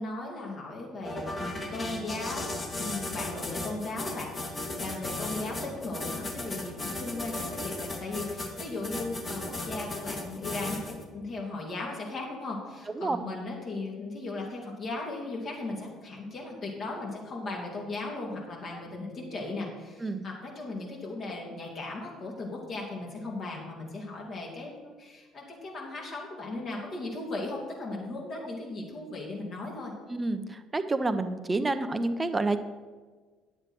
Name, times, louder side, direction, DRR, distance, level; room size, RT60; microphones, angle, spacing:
voice 1, 0.0-29.9, left 2 dB, 50° left, -2 dB, 2.9 m, -37 dB
sound 1, 1.0-11.0, left 2 dB, 30° left, 1.9 m, -36 dB
voice 2, 30.1-32.6, right 2 dB, 25° right, 10 dB, 0.8 m, -29 dB
10.0 x 7.7 x 4.6 m, 1.4 s
hypercardioid pair, 55°, 0 cm